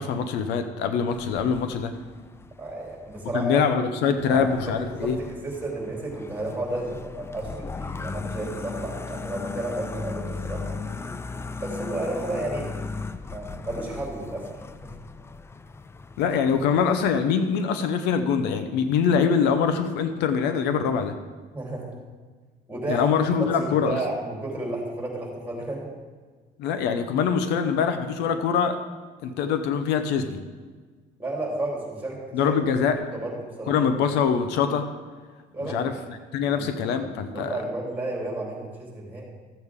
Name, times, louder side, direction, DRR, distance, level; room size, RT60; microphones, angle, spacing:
voice 1, 0.0-1.9 3.3-5.2 16.2-21.1 22.9-24.0 26.6-28.8 29.2-30.4 32.3-33.0 33.7-34.9 35.6-35.9 36.3-37.6, left 6 dB, 90° left, 9 dB, 0.8 m, -24 dB
sound 1, 1.1-3.4 4.2-17.2, left 4 dB, 15° left, 0.3 m, -37 dB
voice 2, 2.6-3.7 4.3-10.8 11.6-12.9 13.2-14.5 14.8-14.9 21.5-21.9 22.7-23.1 23.4-25.9 31.2-32.5 33.0-33.8 35.5-35.9 36.4-37.0 37.3-39.2, right 2 dB, 10° right, -3 dB, 3.5 m, -32 dB
14.0 x 8.1 x 3.7 m, 1.5 s
cardioid pair, 110°, 17 cm